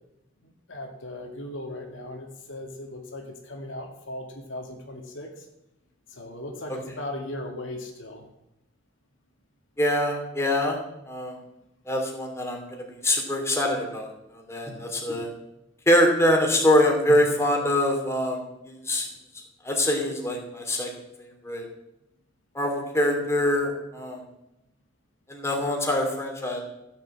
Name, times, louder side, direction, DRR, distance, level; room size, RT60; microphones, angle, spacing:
voice 1, 0.4-5.5 6.1-8.3, left 1 dB, 70° left, 2 dB, 2.2 m, -38 dB
voice 2, 9.8-10.8 11.1-11.4 11.9-15.3 15.9-19.1 19.6-20.9 21.4-21.7 22.5-24.2 25.3-26.6, left 1 dB, 15° left, 1 dB, 2.8 m, -24 dB
14.0 x 7.4 x 7.8 m, 0.88 s
head